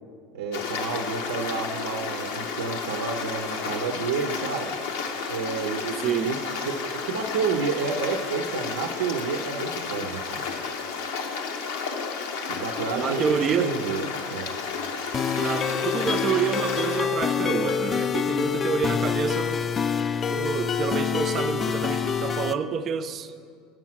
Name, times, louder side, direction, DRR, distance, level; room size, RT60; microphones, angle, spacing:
voice 1, 0.3-4.8 5.3-10.5 12.5-14.6, right 5 dB, 85° right, 3 dB, 0.6 m, -30 dB
Stream, 0.5-17.0, left 5 dB, 75° left, 0.8 m, -32 dB
voice 2, 13.0-13.7 15.4-19.7 20.3-23.3, right 7 dB, 40° right, 9 dB, 0.5 m, -28 dB
sound 1, 15.1-22.5, left 7 dB, 30° left, 0.3 m, -26 dB
8.9 x 6.1 x 5.9 m, 2.1 s
hypercardioid pair, 95°, 0 cm